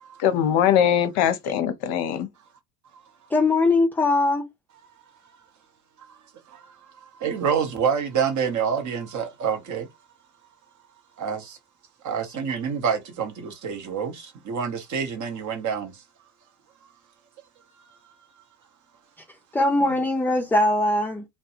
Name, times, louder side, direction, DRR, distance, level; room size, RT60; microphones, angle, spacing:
voice 1, 0.2-2.3, left 9 dB, 55° left, 0.6 m, -21 dB
voice 2, 3.3-4.5 19.5-21.3, left 2 dB, 5° left, 0.4 m, -21 dB
voice 3, 7.2-9.9 11.2-11.6 12.0-15.9, right 7 dB, 40° right, 0.8 m, -27 dB
2.2 x 2.1 x 2.9 m
hypercardioid pair, 65°, 45 cm